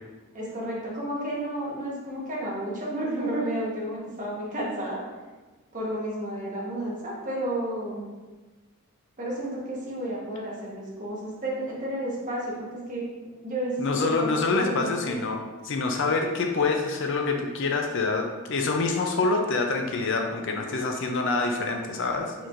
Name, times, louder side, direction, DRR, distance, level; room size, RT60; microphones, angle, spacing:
voice 1, 0.3-5.0 5.7-8.1 9.2-13.0 13.4-15.1, right 1 dB, 35° right, -5 dB, 1.3 m, -31 dB
voice 2, 13.8-15.4 15.6-22.3, left 3 dB, 60° left, 3 dB, 0.5 m, -26 dB
4.4 x 4.3 x 2.5 m, 1.2 s
head